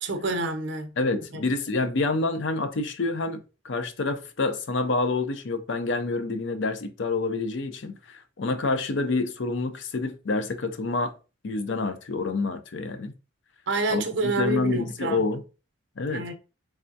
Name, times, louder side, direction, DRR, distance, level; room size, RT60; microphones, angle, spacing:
voice 1, 0.0-0.9 1.3-1.4 13.7-15.2 16.1-16.3, right 2 dB, 60° right, 0.6 m, -28 dB
voice 2, 1.0-11.1 11.4-13.1 13.9-15.4 16.0-16.2, left 3 dB, 65° left, 0.5 m, -28 dB
3.5 x 3.3 x 2.6 m
head